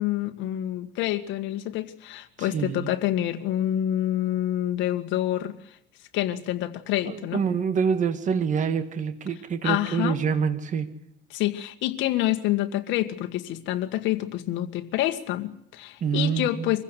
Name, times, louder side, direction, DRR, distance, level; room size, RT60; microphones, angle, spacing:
voice 1, 0.0-5.8 6.1-7.4 9.6-10.2 11.3-16.8, left 13 dB, 70° left, 7 dB, 1.9 m, -27 dB
voice 2, 2.4-2.9 7.1-10.9 16.0-16.8, right 6 dB, 40° right, 10 dB, 2.0 m, -26 dB
24.5 x 15.5 x 8.2 m, 0.72 s
cardioid pair, 125°, 20 cm